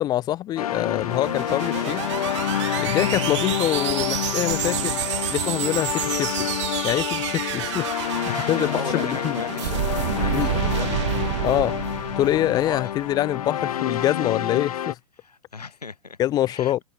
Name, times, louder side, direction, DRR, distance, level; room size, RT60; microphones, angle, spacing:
voice 1, 0.0-2.1 2.8-5.0 5.3-6.5 6.8-7.9 8.2-9.4 10.3-10.5 11.4-11.8 12.2-15.0 16.2-16.8, left 13 dB, 20° left, 0.5 m, -25 dB
sound 1, 0.6-14.9, left 10 dB, 70° left, 0.5 m, -28 dB
sound 2, 0.9-13.2, right 15 dB, 50° right, 0.5 m, -29 dB
Gull seagull, 3.2-11.7, right 6 dB, 15° right, 6.6 m, -50 dB
voice 2, 8.3-11.1 12.6-12.9 15.2-16.2 16.5-16.7, left 4 dB, 85° left, 1.9 m, -36 dB
figure-of-eight pair, 115°, 20 cm